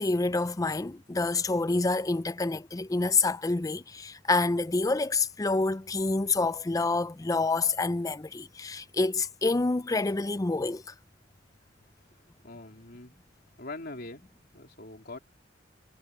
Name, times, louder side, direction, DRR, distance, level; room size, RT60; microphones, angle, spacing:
voice 1, 0.0-10.8, left 3 dB, 20° left, 0.4 m, -27 dB
voice 2, 12.4-13.1 13.6-15.2, left 2 dB, 55° left, 3.5 m, -43 dB
head